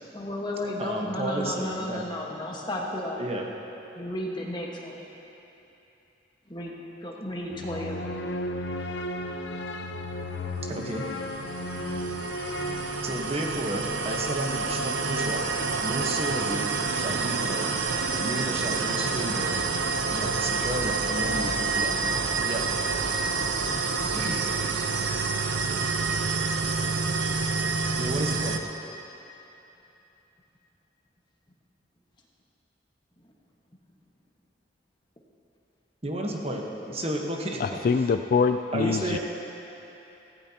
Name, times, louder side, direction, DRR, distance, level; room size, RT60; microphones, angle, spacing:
voice 1, 0.1-3.2 3.9-5.0 6.5-6.7 7.0-8.1, left 1 dB, 25° left, -2 dB, 1.4 m, -33 dB
voice 2, 0.8-2.0 3.2-3.5 10.7-11.1 13.0-15.5 15.8-17.7 18.2-19.6 20.1-22.0 22.4-22.6 24.1-24.4 28.0-28.6 36.0-37.6 38.7-39.2, right 1 dB, 35° right, 1 dB, 1.1 m, -32 dB
sound 1, 7.5-13.6, left 1 dB, 75° left, 0.7 m, -34 dB
sound 2, 10.6-28.6, right 4 dB, 85° right, 0.8 m, -28 dB
voice 3, 37.6-39.2, left 5 dB, 50° left, 8 dB, 0.3 m, -24 dB
17.0 x 15.0 x 2.9 m, 3.0 s
head